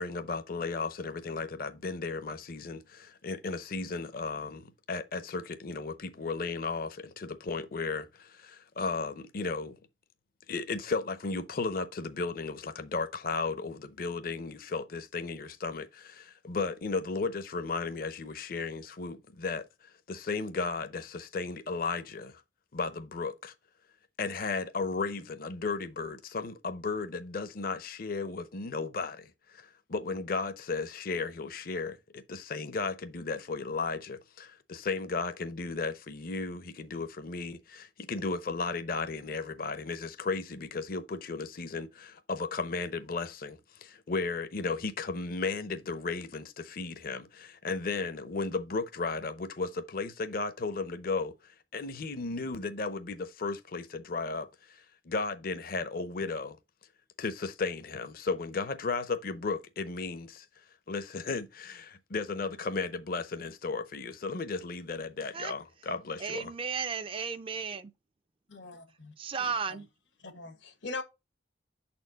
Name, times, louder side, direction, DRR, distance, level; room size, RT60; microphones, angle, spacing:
voice 1, 0.0-9.8 10.5-22.4 22.7-23.5 24.2-56.6 57.2-60.5 60.9-66.5, left 4 dB, 50° left, 0.6 m, -35 dB
voice 2, 66.2-67.9 69.2-69.9, right 6 dB, 30° right, 0.4 m, -34 dB
voice 3, 68.5-68.8 69.4-69.5 70.3-71.0, left 3 dB, 85° left, 1.2 m, -40 dB
6.6 x 4.4 x 3.9 m
head